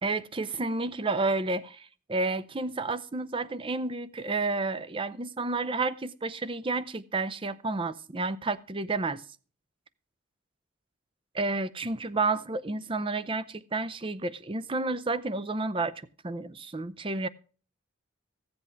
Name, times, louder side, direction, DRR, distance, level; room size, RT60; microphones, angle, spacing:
voice 1, 0.0-9.2 11.3-15.9 16.2-17.3, right 3 dB, 25° right, 0.6 m, -30 dB
15.5 x 7.9 x 4.5 m
head